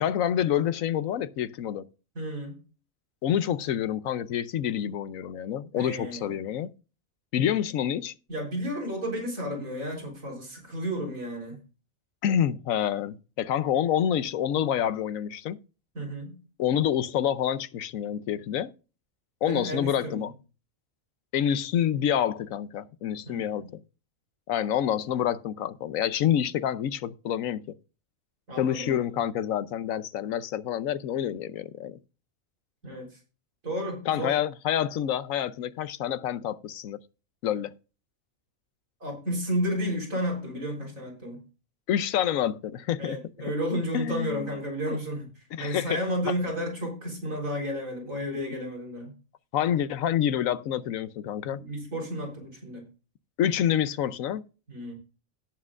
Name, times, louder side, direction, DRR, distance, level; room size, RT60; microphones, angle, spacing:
voice 1, 0.0-1.9 3.2-6.7 7.3-8.1 12.2-15.6 16.6-18.7 19.4-20.3 21.3-23.8 24.5-27.7 28.6-32.0 34.1-37.0 37.4-37.7 41.9-43.2 43.9-44.5 44.9-45.0 45.5-46.0 49.5-51.6 53.4-54.4, left 10 dB, 85° left, 1.1 m, -27 dB
voice 2, 2.1-2.6 5.7-6.4 8.3-11.6 15.9-16.4 19.4-20.3 23.3-23.7 28.5-29.2 32.8-33.2 33.6-34.4 39.0-41.4 43.0-45.3 45.6-49.1 51.5-52.8 54.7-54.9, equal, 90° right, 4.2 m, -32 dB
17.5 x 7.4 x 2.4 m
omnidirectional pair, 1.4 m